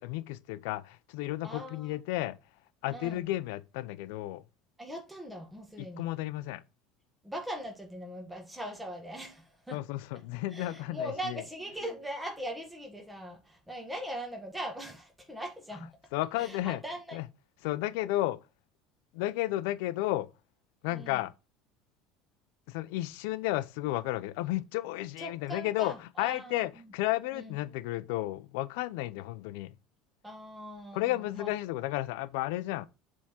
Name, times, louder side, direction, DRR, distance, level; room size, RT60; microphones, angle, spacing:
voice 1, 0.0-2.4 2.8-4.4 5.8-6.6 9.7-11.4 15.7-15.8 16.1-16.8 17.1-17.3 17.6-18.4 19.1-20.3 20.8-21.3 22.7-29.7 30.9-32.9, left 16 dB, 80° left, 0.5 m, -33 dB
voice 2, 1.4-1.9 2.9-3.2 4.8-6.1 7.2-9.8 10.5-15.9 16.4-17.2 20.9-21.2 25.2-26.6 27.3-27.6 30.2-31.5, equal, 10° right, 1.5 m, -40 dB
7.3 x 3.6 x 4.3 m
supercardioid pair, 105°, 0 cm